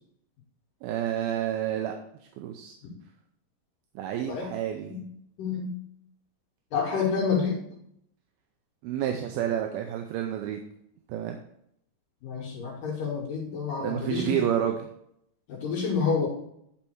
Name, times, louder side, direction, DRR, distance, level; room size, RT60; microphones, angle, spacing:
voice 1, 0.8-2.0 2.4-2.7 4.0-4.9 8.8-10.6 11.1-11.4 13.8-14.9, right 10 dB, 80° right, 4 dB, 2.4 m, -29 dB
voice 2, 6.7-7.6 12.2-14.4 15.5-16.3, left 5 dB, 65° left, -2 dB, 3.1 m, -28 dB
10.0 x 5.5 x 4.5 m, 0.72 s
omnidirectional pair, 4.5 m